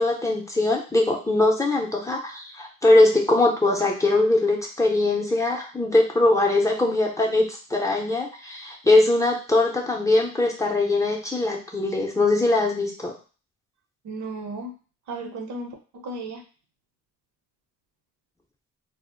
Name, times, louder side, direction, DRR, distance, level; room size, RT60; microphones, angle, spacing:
voice 1, 0.0-13.1, left 2 dB, 10° left, -1 dB, 0.6 m, -21 dB
voice 2, 14.0-14.7 15.1-16.4, right 2 dB, 75° right, 3 dB, 0.8 m, -34 dB
2.0 x 2.0 x 3.6 m, 0.36 s
cardioid pair, 90°, 30 cm